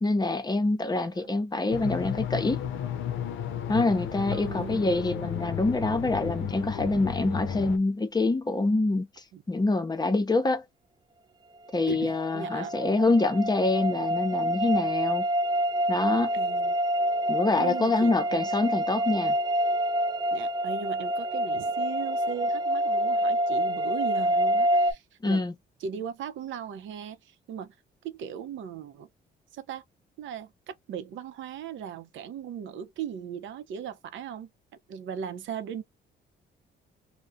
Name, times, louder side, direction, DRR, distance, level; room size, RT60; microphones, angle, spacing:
voice 1, 0.0-2.6 3.7-9.1 9.5-10.6 11.7-15.3 15.9-16.3 17.3-19.3 25.2-25.5, left 2 dB, 20° left, 0.6 m, -25 dB
voice 2, 0.9-1.3 4.3-4.9 6.8-7.0 9.3-9.4 11.9-13.0 16.3-16.8 17.5-18.4 20.3-25.4 25.8-27.7 28.0-29.1 29.5-29.8 30.2-34.5 34.9-35.8, right 8 dB, 75° right, 0.6 m, -38 dB
sound 1, 1.7-7.8, left 9 dB, 80° left, 0.5 m, -33 dB
sound 2, 11.8-24.9, right 1 dB, 20° right, 0.4 m, -27 dB
2.3 x 2.1 x 2.5 m
cardioid pair, 90°, 20 cm